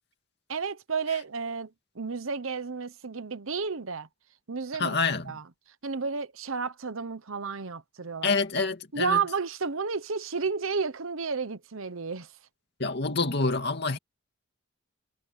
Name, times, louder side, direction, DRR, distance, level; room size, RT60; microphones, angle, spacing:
voice 1, 0.5-4.1 4.5-5.0 5.2-5.4 5.8-8.3 8.9-12.3, right 5 dB, 75° right, 1.0 m, -32 dB
voice 2, 4.8-5.4 8.2-9.2 12.8-14.0, left 4 dB, 50° left, 2.4 m, -27 dB
head